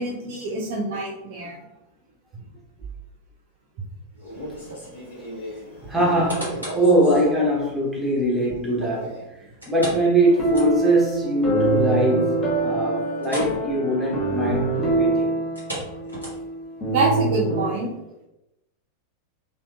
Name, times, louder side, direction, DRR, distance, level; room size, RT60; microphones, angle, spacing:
voice 1, 0.0-1.6 16.9-17.9, right 2 dB, 50° right, -3 dB, 0.5 m, -25 dB
Male speech man speaking, 4.2-7.3 8.6-9.3, equal, 65° left, 1.1 m, -37 dB
voice 2, 5.9-9.1 9.7-15.3, right 1 dB, ahead, -5 dB, 0.9 m, -22 dB
sound 1, 6.0-6.9 7.4-7.5 9.6-11.1 11.4-11.5 11.9-12.0 13.2-13.6 13.9-14.1 15.4-16.7 17.3-17.4, equal, 90° left, 1.1 m, -35 dB
sound 2, 10.2-17.7, right 2 dB, 25° left, 0.8 m, -25 dB
2.7 x 2.5 x 2.3 m, 0.93 s
figure-of-eight pair, 90°, 0 cm